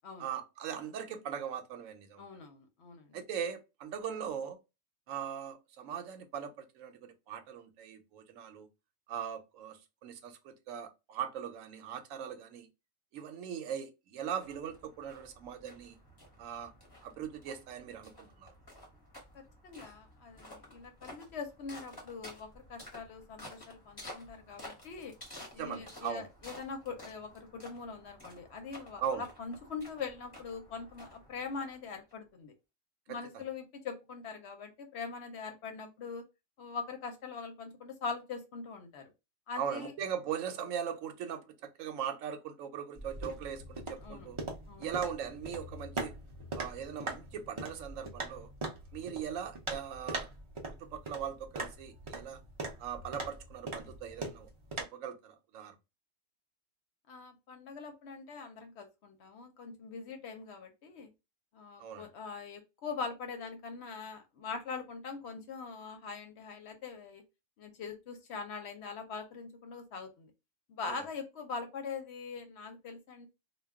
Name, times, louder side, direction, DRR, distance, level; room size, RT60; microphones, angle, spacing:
voice 1, 0.2-2.2 3.1-4.6 5.1-8.7 9.1-12.7 13.1-16.0 16.4-16.7 17.0-18.5 25.6-26.3 29.0-29.2 39.6-44.4 44.8-46.1 46.5-48.5 48.9-50.3 50.8-52.4 52.8-54.5 54.8-55.7 61.8-62.1, right 8 dB, 85° right, 1.0 m, -40 dB
voice 2, 2.2-3.2 19.3-25.1 25.5-29.0 29.4-32.5 33.1-36.2 36.6-39.1 39.5-39.9 44.0-44.3 44.7-45.0 57.1-61.1 61.5-67.2 67.6-70.3 70.7-73.3, left 5 dB, 65° left, 0.8 m, -42 dB
sound 1, 14.4-32.1, left 1 dB, 20° left, 0.8 m, -53 dB
sound 2, 43.0-54.8, right 2 dB, 40° right, 0.4 m, -42 dB
2.2 x 2.2 x 3.5 m
omnidirectional pair, 1.3 m